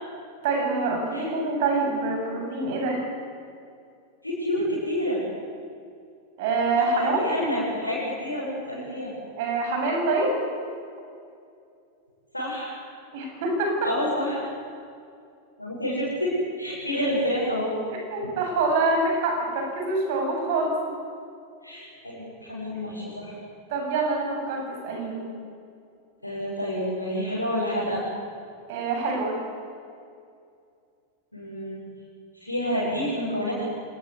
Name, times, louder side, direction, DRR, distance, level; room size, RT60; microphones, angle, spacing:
voice 1, 0.4-3.0 6.4-7.2 9.4-10.3 13.1-13.9 18.1-20.7 23.7-25.3 28.7-29.4, right 3 dB, 50° right, 1 dB, 7.9 m, -25 dB
voice 2, 4.2-5.2 6.8-9.1 12.3-12.7 13.8-14.4 15.6-17.7 21.6-23.3 26.2-28.1 31.3-31.8 32.4-33.6, equal, 85° left, -7 dB, 7.5 m, -28 dB
27.0 x 19.5 x 8.5 m, 2.4 s
figure-of-eight pair, 90°, 0 cm